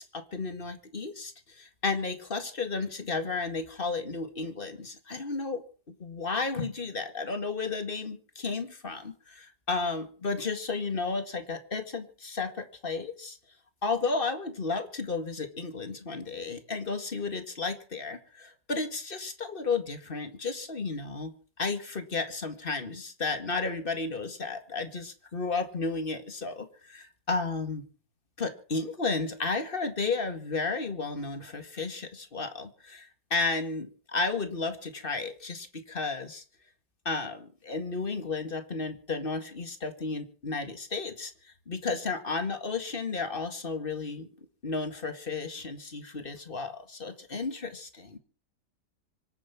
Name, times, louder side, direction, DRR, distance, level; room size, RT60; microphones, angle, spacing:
voice 1, 0.0-5.6 6.0-13.4 13.8-21.3 21.6-27.9 28.4-36.4 37.1-41.3 41.7-44.3 44.6-48.2, left 4 dB, 30° left, 8 dB, 2.1 m, -33 dB
25.0 x 9.1 x 5.9 m, 0.40 s
omnidirectional pair, 1.8 m